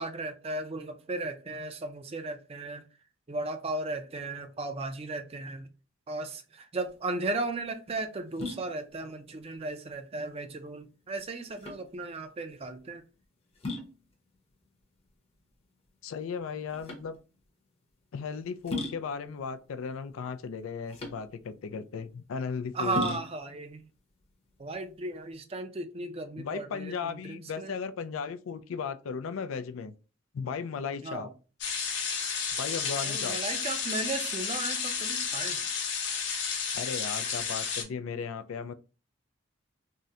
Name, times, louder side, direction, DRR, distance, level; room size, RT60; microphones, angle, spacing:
voice 1, 0.0-2.8 3.3-5.7 6.1-13.0 22.7-23.8 24.6-27.8 31.0-31.3 33.0-35.7, right 2 dB, 30° right, 0.4 m, -35 dB
sound 1, 6.8-25.4, left 2 dB, 30° left, 0.7 m, -42 dB
voice 2, 16.0-17.2 18.1-23.2 26.4-29.9 30.3-31.3 32.5-33.4 36.7-38.7, left 6 dB, 90° left, 0.4 m, -36 dB
sound 2, 31.6-37.8, left 6 dB, 60° left, 0.9 m, -32 dB
3.6 x 2.1 x 2.7 m
head